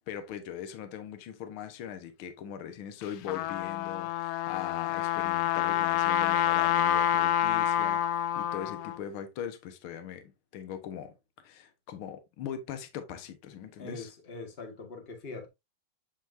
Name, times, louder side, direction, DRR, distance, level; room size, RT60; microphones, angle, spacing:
voice 1, 0.0-14.1, left 9 dB, 60° left, 1.4 m, -41 dB
Trumpet, 3.0-9.0, left 11 dB, 85° left, 2.3 m, -27 dB
voice 2, 13.8-15.5, left 3 dB, 40° left, 0.8 m, -42 dB
8.2 x 5.9 x 2.6 m
omnidirectional pair, 3.9 m